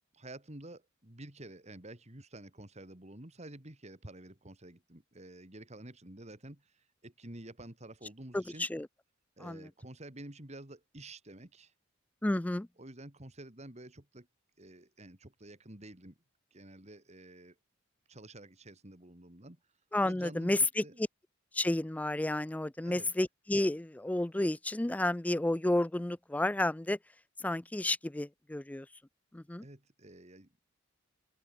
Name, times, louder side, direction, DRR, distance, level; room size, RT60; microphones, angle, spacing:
voice 1, 0.1-8.7 9.4-11.7 12.8-14.3 14.6-16.2 16.5-17.6 18.1-19.6 20.0-21.0 22.8-23.1 29.6-30.5, right 1 dB, 35° right, 2.5 m, -50 dB
voice 2, 8.3-8.9 9.4-9.7 12.2-12.7 19.9-20.8 21.5-27.0 27.4-28.9 29.3-29.6, left 1 dB, 5° left, 0.3 m, -31 dB
open air
head